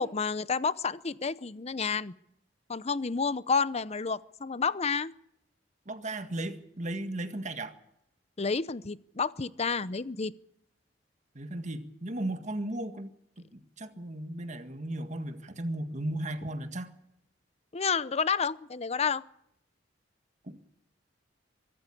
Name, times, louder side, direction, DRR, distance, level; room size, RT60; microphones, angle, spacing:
voice 1, 0.0-2.1 2.7-5.1 8.4-10.3 17.7-19.2, left 5 dB, 35° left, 17 dB, 0.7 m, -30 dB
voice 2, 5.9-7.7 11.4-13.1 13.4-16.9 20.4-20.7, right 1 dB, 40° right, 8 dB, 1.8 m, -36 dB
24.0 x 13.5 x 8.5 m, 0.76 s
head